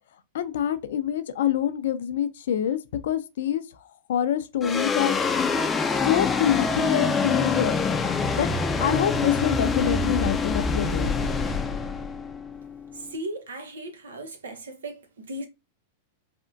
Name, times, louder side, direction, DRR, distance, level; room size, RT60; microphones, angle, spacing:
voice 1, 0.3-3.6 4.1-5.2 6.0-7.8 8.4-8.5 8.8-11.3, left 10 dB, 75° left, 0.4 m, -26 dB
sound 1, 4.6-13.1, left 4 dB, 15° left, 0.4 m, -25 dB
voice 2, 12.9-15.5, right 1 dB, 90° right, 0.8 m, -37 dB
3.4 x 2.1 x 2.5 m
hypercardioid pair, 125°, 0 cm